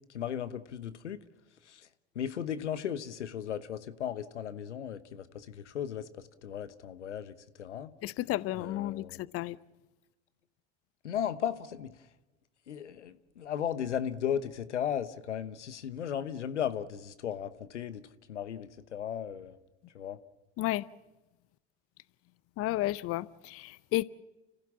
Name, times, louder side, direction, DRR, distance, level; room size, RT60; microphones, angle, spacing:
voice 1, 0.1-1.2 1.6-1.9 2.1-7.9 8.5-9.2 11.0-12.1 12.7-18.0 18.3-19.6 19.9-20.2, left 9 dB, 85° left, 1.1 m, -36 dB
voice 2, 8.0-9.6 20.6-20.9 22.6-24.0, left 16 dB, 40° left, 0.6 m, -32 dB
29.5 x 15.0 x 7.3 m
hypercardioid pair, 75°, 34 cm